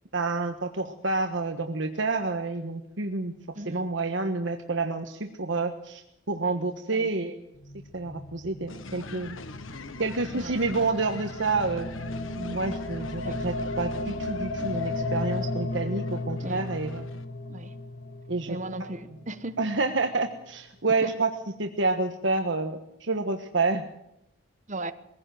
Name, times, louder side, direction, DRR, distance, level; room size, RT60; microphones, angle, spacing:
voice 1, 0.1-3.3 3.6-7.5 7.9-9.4 10.0-11.9 12.4-17.1 18.3-18.9 19.6-21.3 21.6-23.8, right 3 dB, 70° right, 5 dB, 1.3 m, -29 dB
voice 2, 3.5-3.9 6.9-7.1 10.3-10.5 13.2-13.4 16.4-16.7 17.5-17.7 18.5-19.7 21.0-21.1 24.7-24.9, right 1 dB, 35° right, 10 dB, 1.2 m, -36 dB
sound 1, 7.5-19.8, left 2 dB, 55° left, 1.6 m, -35 dB
sound 2, 8.7-17.2, left 3 dB, 85° left, 1.3 m, -44 dB
22.0 x 16.5 x 7.7 m, 0.83 s
head